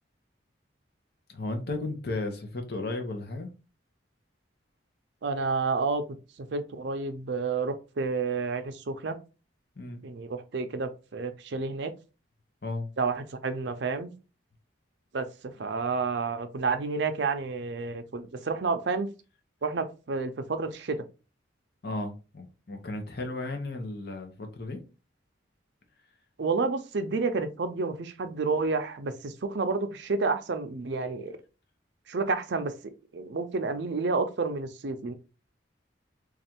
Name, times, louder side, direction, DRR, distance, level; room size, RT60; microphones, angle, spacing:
voice 1, 1.3-3.5 9.8-10.0 12.6-12.9 21.8-24.8, left 2 dB, 55° left, 0.8 m, -34 dB
voice 2, 5.2-6.0 6.4-9.2 10.0-11.9 13.0-14.1 15.1-19.1 19.6-21.0 26.4-31.4 32.1-35.1, right 4 dB, 65° right, 0.5 m, -30 dB
3.2 x 2.4 x 4.3 m
head